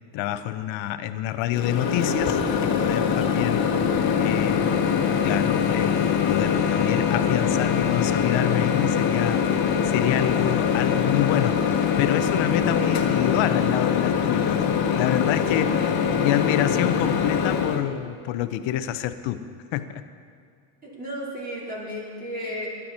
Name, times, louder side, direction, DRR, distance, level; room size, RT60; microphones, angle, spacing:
voice 1, 0.1-3.6 4.2-4.7 5.2-9.4 9.8-19.4 19.7-20.0, left 12 dB, 75° left, 11 dB, 0.9 m, -27 dB
Microwave oven, 1.5-17.8, left 7 dB, 50° left, 1.6 m, -23 dB
voice 2, 12.7-13.1 15.7-16.1 20.8-22.7, equal, 20° right, -5 dB, 4.4 m, -35 dB
17.0 x 11.5 x 4.4 m, 2.3 s
cardioid pair, 110°, 46 cm